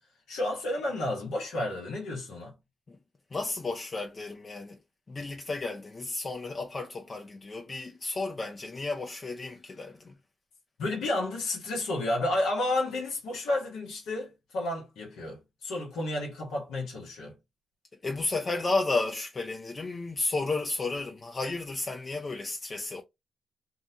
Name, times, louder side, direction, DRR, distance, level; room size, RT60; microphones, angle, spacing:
voice 1, 0.3-2.5 10.8-17.3, left 1 dB, 85° left, 0.8 m, -31 dB
voice 2, 3.3-4.8 5.1-10.1 18.0-23.0, left 3 dB, 40° left, 0.4 m, -32 dB
2.7 x 2.1 x 2.6 m
supercardioid pair, 45°, 0 cm